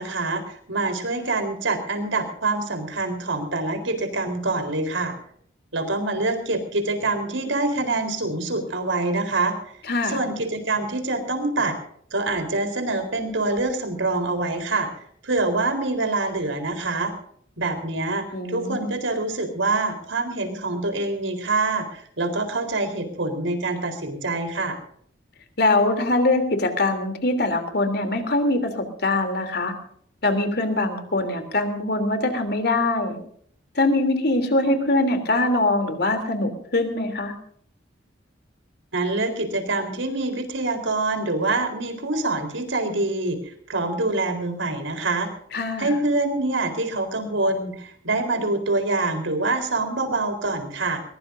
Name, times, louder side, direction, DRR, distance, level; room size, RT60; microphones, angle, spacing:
voice 1, 0.0-5.2 5.7-9.6 10.0-11.7 12.1-14.9 15.2-17.1 17.6-24.8 38.9-43.4 43.7-45.3 45.8-51.0, right 2 dB, 80° right, 6 dB, 4.1 m, -25 dB
voice 2, 9.9-10.2 18.3-18.9 25.6-29.7 30.2-33.2 33.7-37.3 45.5-45.9, left 2 dB, 55° left, 7 dB, 3.2 m, -23 dB
22.0 x 21.5 x 2.7 m, 0.63 s
head